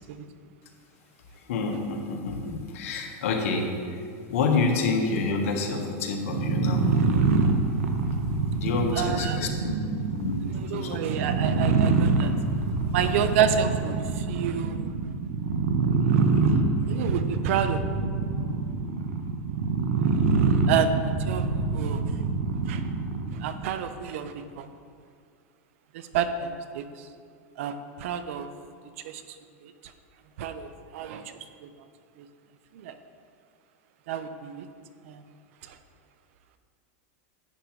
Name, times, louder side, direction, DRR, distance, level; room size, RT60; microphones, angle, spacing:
voice 1, 1.4-4.0 4.3-6.9 8.6-9.8 10.2-11.0 13.0-13.1, left 4 dB, 75° left, 2 dB, 1.4 m, -28 dB
sound 1, 6.2-23.5, right 4 dB, 80° right, 1.0 m, -25 dB
voice 2, 8.9-9.4 10.4-12.3 12.9-14.9 16.8-17.8 20.7-22.0 22.7-22.8 23.3-24.7 25.9-27.1 27.6-28.5 29.0-29.2 29.6-29.7 30.4-31.3 31.6-31.7 32.2-32.3 32.7-32.9 34.1-34.7 35.0-35.2 35.6-35.8, right 8 dB, 65° right, 10 dB, 0.7 m, -29 dB
11.0 x 8.5 x 3.2 m, 2.2 s
supercardioid pair, 150°, 8 cm